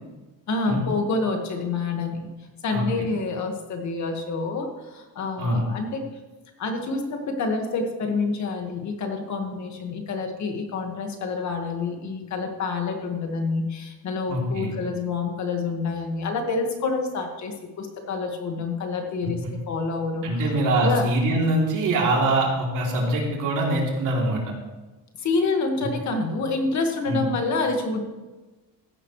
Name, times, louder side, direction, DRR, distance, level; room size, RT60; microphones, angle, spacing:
voice 1, 0.5-2.3 2.6-6.0 6.6-19.4 19.7-20.5 20.8-21.1 25.2-28.0, left 3 dB, 50° left, 4 dB, 1.8 m, -27 dB
voice 2, 14.3-14.7 20.2-24.4 27.1-27.2, right 1 dB, 60° right, -2 dB, 3.2 m, -23 dB
15.0 x 11.0 x 3.3 m, 1.2 s
cardioid pair, 160°, 36 cm